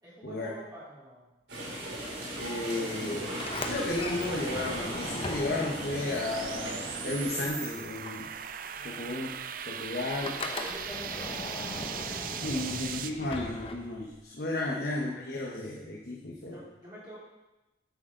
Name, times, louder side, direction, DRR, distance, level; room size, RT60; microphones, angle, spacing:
voice 1, 0.0-1.3 8.8-9.2 10.6-11.4 12.4-12.8 14.6-14.9 16.5-17.2, equal, 20° right, -10 dB, 3.7 m, -47 dB
sound 1, 1.5-7.5, right 1 dB, 75° right, 3.4 m, -38 dB
voice 2, 2.3-3.3 3.6-8.3 8.8-9.3 9.7-10.4 12.4-16.6, left 2 dB, 55° left, -3 dB, 1.2 m, -33 dB
sound 2, 3.0-13.1, right 8 dB, 45° right, 0.5 m, -40 dB
Sliding door, 3.3-7.6 7.8-14.2, left 2 dB, 30° left, 0.8 m, -40 dB
10.5 x 8.5 x 3.9 m, 1.0 s
head